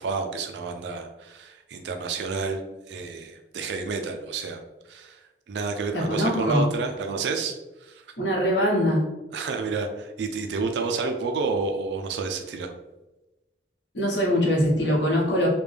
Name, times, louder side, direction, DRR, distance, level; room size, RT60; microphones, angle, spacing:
voice 1, 0.0-2.6 2.9-4.6 4.9-8.0 9.3-12.7, right 4 dB, 75° right, 5 dB, 0.3 m, -30 dB
voice 2, 5.9-6.6 8.2-9.0 13.9-15.5, equal, 80° left, -4 dB, 1.1 m, -22 dB
3.4 x 2.2 x 3.3 m, 1.1 s
head